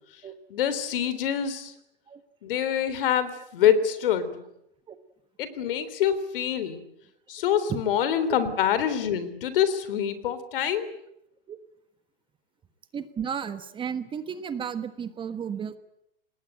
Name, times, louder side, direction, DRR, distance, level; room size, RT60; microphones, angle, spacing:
voice 1, 0.5-1.7 2.4-4.4 5.4-6.8 7.3-10.9, left 9 dB, 65° left, 14 dB, 3.6 m, -25 dB
voice 2, 12.9-15.8, right 7 dB, 15° right, 11 dB, 1.4 m, -33 dB
26.5 x 19.5 x 9.1 m, 0.80 s
hypercardioid pair, 140°, 29 cm